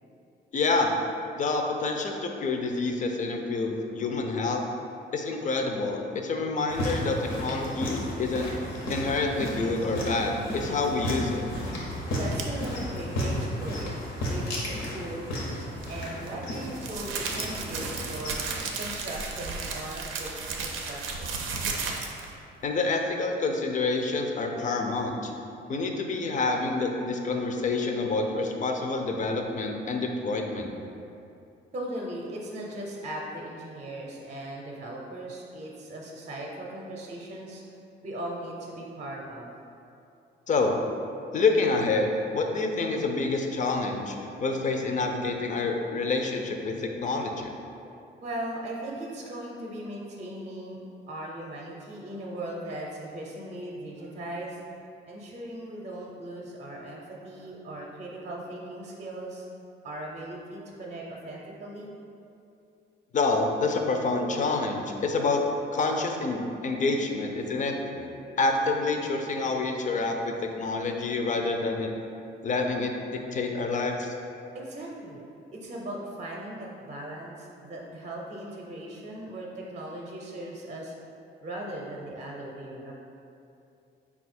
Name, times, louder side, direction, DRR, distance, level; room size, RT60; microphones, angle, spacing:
voice 1, 0.5-0.9 1.4-4.6 5.1-8.5 8.9-11.4 22.6-25.3 25.7-30.8 40.5-40.7 41.3-47.5 63.1-65.4 65.7-68.1 68.4-71.9 72.4-74.1, left 3 dB, 40° left, 3 dB, 0.5 m, -27 dB
sound 1, 6.7-18.6, equal, 80° left, 0.9 m, -33 dB
voice 2, 12.1-13.9 14.3-15.4 15.9-18.3 18.7-20.3 20.6-21.4 31.7-37.6 38.0-39.5 48.2-50.8 51.1-54.6 55.1-59.5 59.8-61.9 74.5-75.2 75.5-80.9 81.4-82.9, right 1 dB, 35° right, -2 dB, 0.6 m, -38 dB
sound 2, 12.3-12.7 15.8-22.3, right 4 dB, 85° right, 0.5 m, -34 dB
4.2 x 2.3 x 4.2 m, 2.6 s
cardioid pair, 90°, 20 cm